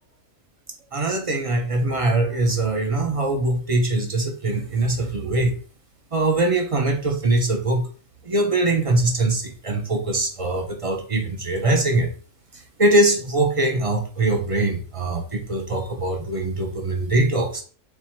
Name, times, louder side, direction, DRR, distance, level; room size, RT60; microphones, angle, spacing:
voice 1, 0.9-5.5 6.1-7.8 8.2-12.1 12.8-17.6, right 2 dB, 45° right, 3 dB, 0.4 m, -22 dB
3.4 x 2.7 x 4.3 m, 0.39 s
omnidirectional pair, 1.4 m